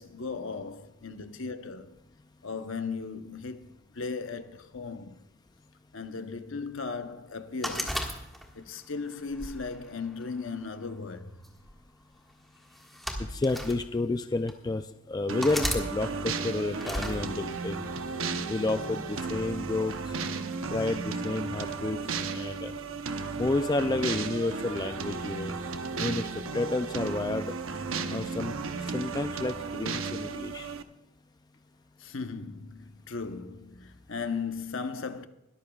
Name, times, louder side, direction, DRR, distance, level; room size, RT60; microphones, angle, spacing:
voice 1, 0.0-2.0 2.4-5.2 5.9-8.1 8.5-11.4 32.0-35.3, left 4 dB, 70° left, 0.9 m, -37 dB
sound 1, 7.6-8.7 9.3-10.5 11.4-11.7 12.7-13.8 14.5-14.6 15.4-15.8 16.8-17.2, equal, ahead, 1.6 m, -33 dB
voice 2, 13.2-17.9 18.5-20.1 20.7-22.0 22.3-22.7 23.4-25.6 26.0-27.6 28.1-30.7, left 2 dB, 20° left, 0.3 m, -31 dB
sound 2, 15.3-30.8, right 4 dB, 75° right, 0.9 m, -34 dB
21.5 x 13.5 x 2.4 m
head